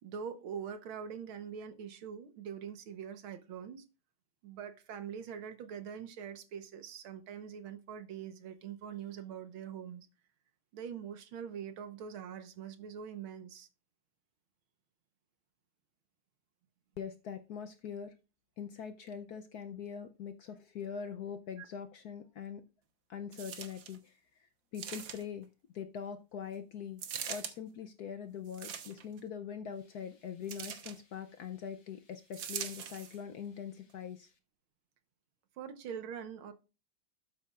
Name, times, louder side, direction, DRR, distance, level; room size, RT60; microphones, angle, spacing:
voice 1, 0.0-3.8 4.4-10.1 10.7-13.7 21.6-21.7 35.6-36.5, right 8 dB, 85° right, 1.9 m, -43 dB
voice 2, 17.0-18.1 18.6-22.6 23.1-25.5 25.7-27.0 27.3-34.3, left 7 dB, 70° left, 0.9 m, -43 dB
sound 1, 23.3-24.0 24.7-25.4 27.0-27.5 28.5-29.2 30.5-31.0 32.3-33.2 33.9-34.0, right 8 dB, 65° right, 1.7 m, -42 dB
12.5 x 8.5 x 2.4 m
omnidirectional pair, 2.3 m